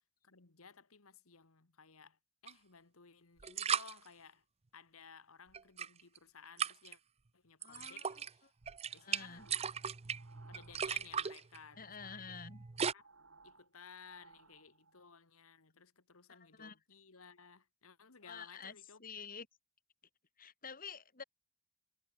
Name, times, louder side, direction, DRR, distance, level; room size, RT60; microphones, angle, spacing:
voice 1, 0.2-4.4 4.7-7.0 7.3-8.5 8.9-9.5 10.5-12.4 12.9-13.1 13.4-19.0, left 6 dB, 90° left, 1.8 m, -58 dB
sound 1, 2.5-2.6 3.4-3.9 5.5-6.2 6.6-6.9 7.6-8.3 8.6-12.9, right 7 dB, 30° right, 0.6 m, -38 dB
voice 2, 7.6-8.5 8.9-9.5 11.8-12.6 16.3-16.8 18.2-19.5 20.4-21.2, left 6 dB, 45° left, 3.8 m, -49 dB
sound 2, 8.7-11.3 11.6-15.1, right 4 dB, 75° right, 5.9 m, -64 dB
head